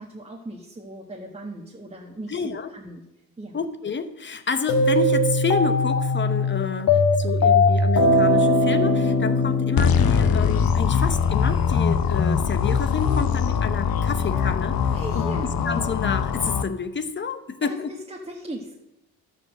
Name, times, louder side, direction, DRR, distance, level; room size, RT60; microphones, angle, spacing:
voice 1, 0.0-3.0 3.4-3.6 14.9-15.5 17.6-17.8 18.1-18.7, right 1 dB, 15° right, -2 dB, 1.5 m, -38 dB
voice 2, 2.3-2.7 3.5-15.3 15.7-17.9, left 5 dB, 30° left, 10 dB, 0.9 m, -29 dB
sound 1, 4.7-10.9, left 2 dB, 55° left, 1.7 m, -20 dB
sound 2, 9.8-16.6, left 7 dB, 75° left, 1.0 m, -22 dB
13.0 x 5.2 x 7.6 m, 0.89 s
cardioid pair, 130°, 36 cm